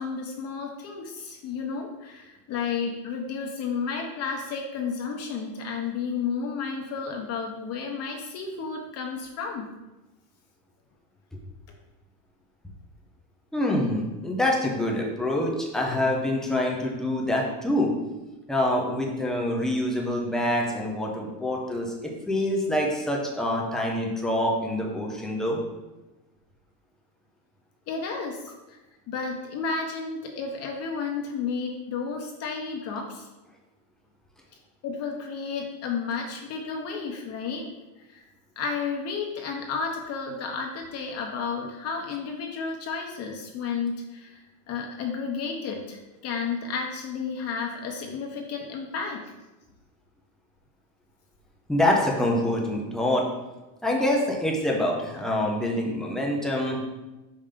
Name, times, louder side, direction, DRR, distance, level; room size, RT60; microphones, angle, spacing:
voice 1, 0.0-9.6 27.9-28.8 29.1-33.2 34.8-37.7 38.1-38.2 38.6-49.2, left 5 dB, 35° left, 1 dB, 0.7 m, -32 dB
voice 2, 13.5-17.9 18.5-21.9 22.3-25.6 51.7-53.2 53.8-56.8, left 1 dB, ahead, -2 dB, 0.3 m, -26 dB
5.5 x 5.1 x 3.6 m, 1.1 s
supercardioid pair, 150°, 45 cm